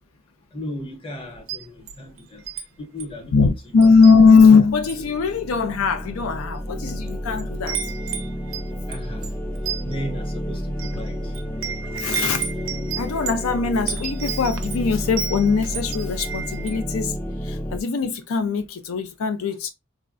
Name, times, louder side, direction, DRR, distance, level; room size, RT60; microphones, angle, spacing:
voice 1, 0.5-2.4 2.8-3.3 8.9-9.3 9.8-11.2, left 1 dB, 25° left, 0.8 m, -35 dB
Wind chime, 1.4-2.6 3.0-3.2 3.8-4.5 4.8-5.1 5.9-6.0 6.6-7.1 7.3-16.8, right 8 dB, 75° right, 0.5 m, -33 dB
voice 2, 3.3-7.8 11.8-12.5 13.0-17.1 17.4-19.7, left 5 dB, 85° left, 0.4 m, -19 dB
sound 1, 4.2-17.8, equal, 10° left, 0.4 m, -31 dB
3.4 x 2.1 x 2.4 m
head